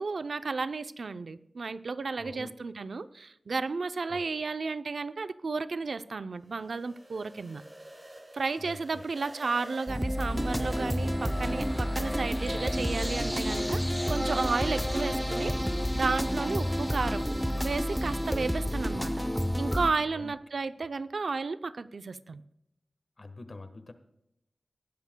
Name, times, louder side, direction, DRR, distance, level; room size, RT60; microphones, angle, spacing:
voice 1, 0.0-7.6 8.3-13.8 14.1-15.5 15.9-17.2 17.6-19.1 19.6-22.4, right 4 dB, 75° right, 12 dB, 0.5 m, -33 dB
voice 2, 2.2-2.5 4.1-4.2 8.6-9.0 14.7-14.9 20.1-20.3 20.8-20.9 23.2-23.9, left 3 dB, 50° left, 9 dB, 1.3 m, -45 dB
sound 1, 6.4-15.5, right 1 dB, 30° right, 2.8 m, -45 dB
sound 2, 9.9-19.9, equal, ahead, 0.7 m, -30 dB
19.0 x 12.5 x 2.2 m, 0.84 s
wide cardioid pair, 95°, 0 cm